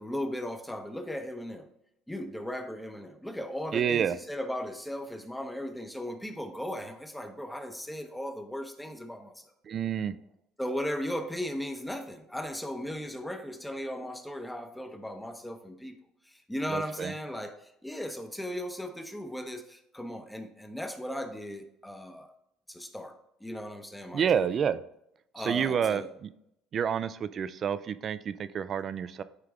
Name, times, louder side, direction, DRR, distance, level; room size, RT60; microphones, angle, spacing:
voice 1, 0.0-1.7 2.1-9.4 10.6-16.0 16.2-22.3 22.7-24.6 25.3-26.1, equal, 5° left, 6 dB, 0.8 m, -37 dB
voice 2, 3.7-4.2 9.7-10.1 16.7-17.1 24.1-24.8 25.4-26.3 26.7-29.2, right 8 dB, 40° right, 14 dB, 0.4 m, -29 dB
9.5 x 3.3 x 3.6 m, 0.78 s
cardioid pair, 110°, 0 cm